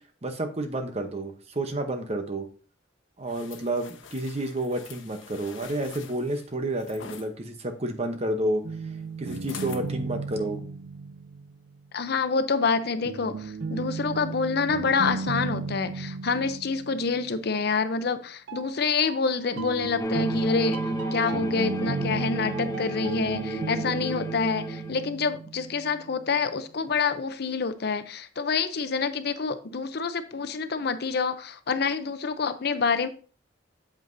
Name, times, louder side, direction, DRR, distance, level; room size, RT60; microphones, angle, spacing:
voice 1, 0.2-2.5 3.2-8.6 9.2-10.6, right 1 dB, 35° right, 0.9 m, -30 dB
sound 1, 3.3-7.3 9.2-9.9 10.4-10.5, left 6 dB, 90° left, 0.9 m, -45 dB
sound 2, 8.6-11.8 13.0-17.7 18.5-26.2, right 4 dB, 70° right, 0.6 m, -35 dB
voice 2, 11.9-20.8 21.1-33.1, left 5 dB, 55° left, 0.6 m, -27 dB
sound 3, 20.0-25.1, right 1 dB, 20° left, 0.6 m, -32 dB
7.9 x 7.5 x 2.6 m
head